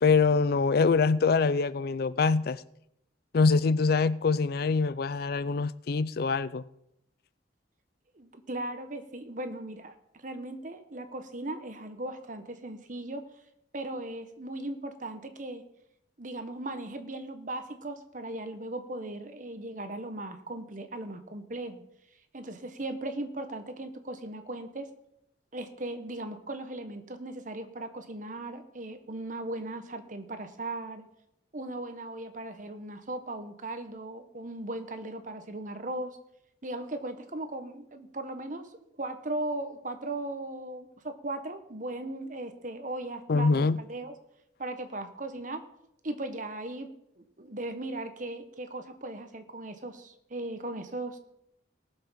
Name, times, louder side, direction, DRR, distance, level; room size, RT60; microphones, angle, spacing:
voice 1, 0.0-2.6 3.3-6.6 43.3-43.8, left 4 dB, 55° left, 0.4 m, -24 dB
voice 2, 8.1-9.9 10.2-13.2 13.7-15.6 16.2-21.8 22.3-24.9 25.5-31.0 31.5-36.2 36.6-38.7 39.0-44.1 44.6-45.6 46.0-46.9 47.2-51.2, right 2 dB, 45° right, 1.3 m, -37 dB
18.5 x 7.3 x 5.7 m
head